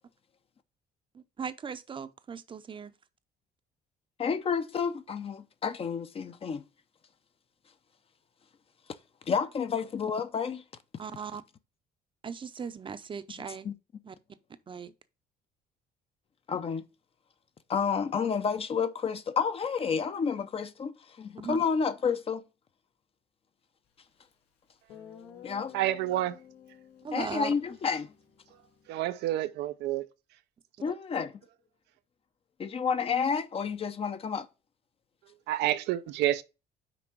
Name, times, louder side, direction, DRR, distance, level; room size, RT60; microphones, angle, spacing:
voice 1, 1.1-2.9 11.0-11.4 12.2-13.7 14.0-14.1 14.7-14.9 21.4-21.6 27.0-27.5 30.9-31.0, right 6 dB, 30° right, 0.7 m, -38 dB
voice 2, 4.2-6.6 9.3-10.6 13.6-13.7 16.5-16.9 17.7-22.4 25.4-25.7 27.1-28.1 30.8-31.3 32.6-34.5, left 6 dB, 35° left, 0.7 m, -30 dB
Guitar, 24.3-24.4 24.9-29.0, left 9 dB, 80° left, 1.6 m, -52 dB
voice 3, 25.7-26.4 28.9-30.1 35.5-36.4, right 13 dB, 85° right, 0.6 m, -28 dB
6.0 x 4.4 x 6.0 m
cardioid pair, 110°, 17 cm